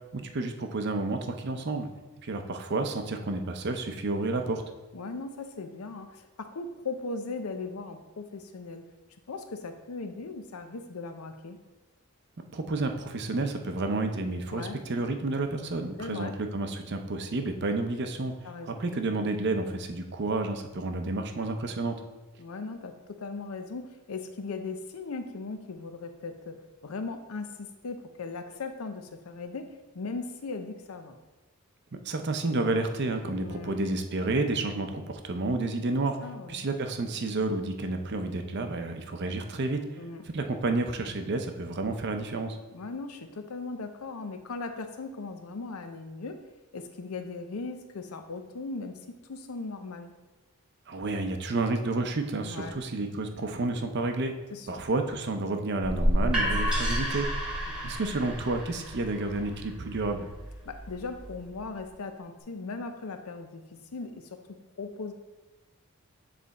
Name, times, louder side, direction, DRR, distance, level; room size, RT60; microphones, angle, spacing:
voice 1, 0.1-1.9 2.2-4.6 12.5-18.3 18.7-22.0 32.0-36.2 36.5-39.8 40.3-42.6 50.9-54.3 54.7-57.3 57.8-60.3, right 2 dB, 50° right, 6 dB, 0.6 m, -30 dB
voice 2, 4.9-8.9 9.3-11.6 14.5-14.8 16.0-16.3 18.4-18.8 22.4-31.2 33.4-33.8 36.2-36.6 40.0-40.2 42.7-46.4 46.7-50.1 52.4-52.8 54.5-54.8 57.7-58.0 60.7-64.4 64.8-65.1, left 3 dB, 80° left, 8 dB, 0.6 m, -38 dB
sound 1, 55.8-61.6, equal, 5° right, 1.2 m, -30 dB
8.7 x 3.3 x 4.0 m, 1.2 s
head